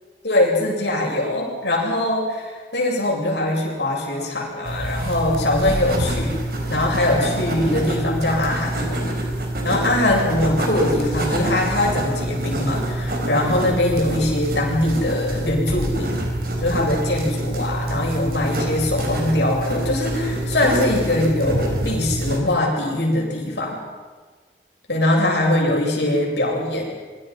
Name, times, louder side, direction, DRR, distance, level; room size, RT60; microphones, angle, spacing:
voice 1, 0.2-6.4 6.7-9.1 9.6-16.2 16.6-23.8 24.9-26.9, left 1 dB, 75° left, -1 dB, 7.8 m, -22 dB
sound 1, 4.6-22.4, right 1 dB, 55° right, 4.5 m, -26 dB
27.0 x 24.0 x 5.8 m, 1.4 s
head